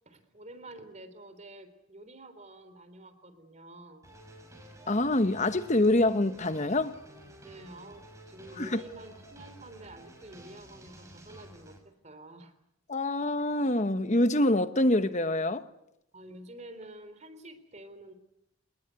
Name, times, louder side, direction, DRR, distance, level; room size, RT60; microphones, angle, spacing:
voice 1, 0.1-4.0 7.4-11.8 12.0-12.5 16.1-18.1, right 1 dB, 35° right, 3.6 m, -48 dB
sound 1, 4.0-11.8, right 1 dB, 15° right, 6.4 m, -51 dB
voice 2, 4.9-7.0 8.6-8.8 12.9-15.7, left 1 dB, 35° left, 1.2 m, -25 dB
29.0 x 20.0 x 8.2 m
head